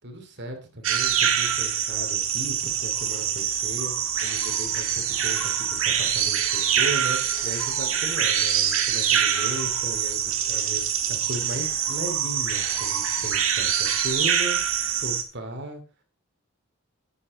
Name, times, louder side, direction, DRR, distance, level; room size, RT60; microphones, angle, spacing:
voice 1, 0.0-3.9 4.2-15.8, right 1 dB, 55° right, 5 dB, 2.8 m, -36 dB
sound 1, 0.8-15.2, right 8 dB, 90° right, 1.8 m, -25 dB
11.5 x 8.5 x 4.2 m, 0.33 s
head